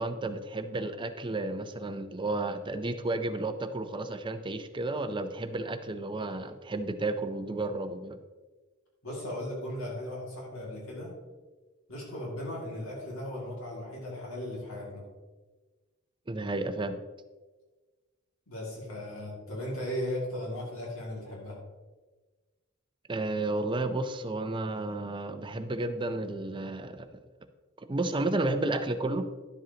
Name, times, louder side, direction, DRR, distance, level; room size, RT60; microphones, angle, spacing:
voice 1, 0.0-8.2 16.3-17.0 23.1-27.2 27.8-29.3, right 2 dB, 25° right, 9 dB, 0.5 m, -32 dB
voice 2, 9.0-11.1 11.9-15.1 18.5-21.6, left 1 dB, 75° left, -3 dB, 2.3 m, -37 dB
11.5 x 7.6 x 2.8 m, 1.3 s
head